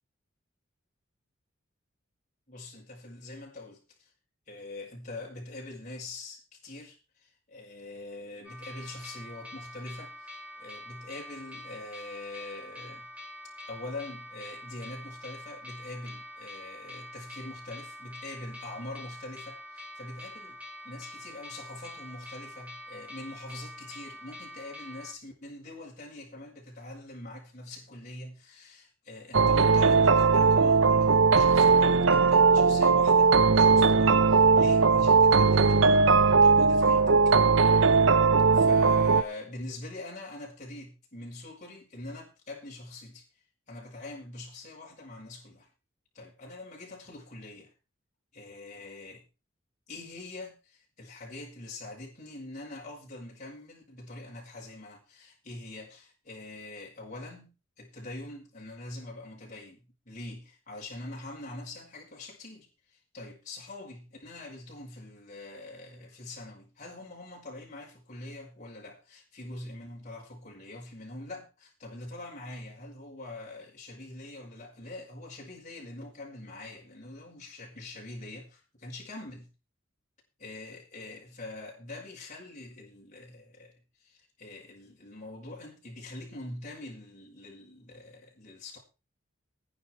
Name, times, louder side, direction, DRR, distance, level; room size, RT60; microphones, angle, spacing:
voice 1, 2.5-4.1 4.5-13.1 13.7-37.4 38.5-43.2 43.7-45.7 46.1-47.7 48.3-49.2 49.9-79.5 80.4-83.7 84.0-88.8, left 2 dB, 35° left, 6.1 m, -44 dB
sound 1, 8.4-25.1, left 1 dB, 5° right, 6.2 m, -45 dB
sound 2, 29.3-39.2, right 4 dB, 65° right, 0.8 m, -20 dB
17.0 x 9.9 x 4.7 m
head